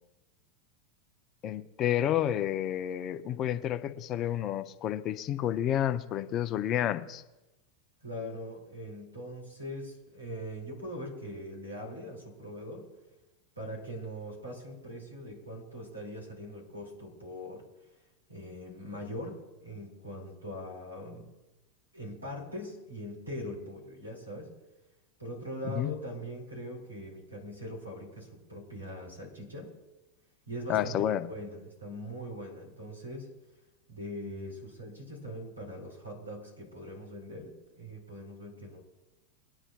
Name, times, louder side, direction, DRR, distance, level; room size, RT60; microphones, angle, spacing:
voice 1, 1.4-7.2 25.7-25.9 30.7-31.3, left 11 dB, 35° left, 12 dB, 0.7 m, -30 dB
voice 2, 8.0-12.9 13.6-17.7 18.3-21.3 21.9-24.5 25.2-29.7 30.5-33.3 33.9-38.8, equal, 85° right, 0 dB, 4.8 m, -41 dB
22.5 x 10.0 x 2.5 m, 1.0 s
figure-of-eight pair, 85°, 0 cm